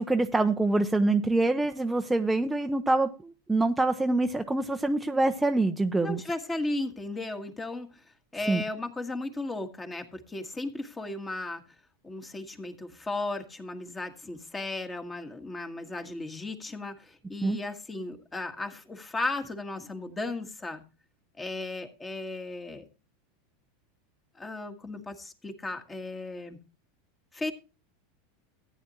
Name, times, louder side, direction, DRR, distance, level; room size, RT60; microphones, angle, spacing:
voice 1, 0.0-6.2 8.5-8.6 17.4-17.6, right 2 dB, 10° right, 6 dB, 0.6 m, -25 dB
voice 2, 6.0-7.9 8.3-11.6 12.0-20.8 21.4-22.8 24.4-26.6 27.3-27.5, left 2 dB, 15° left, 7 dB, 1.6 m, -35 dB
14.5 x 9.2 x 2.9 m, 0.31 s
hypercardioid pair, 115°, 0 cm